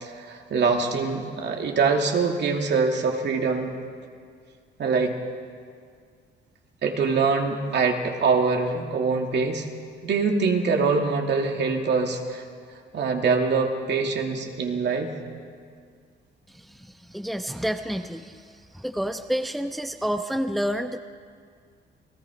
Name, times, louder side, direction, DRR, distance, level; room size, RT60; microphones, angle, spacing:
voice 1, 0.0-3.7 4.8-5.1 6.8-9.7 10.0-12.4 12.9-15.1, right 4 dB, 60° right, 2 dB, 2.7 m, -24 dB
voice 2, 17.1-18.3 18.7-21.0, equal, ahead, 6 dB, 0.9 m, -29 dB
29.5 x 19.0 x 5.2 m, 2.1 s
cardioid pair, 90°, 20 cm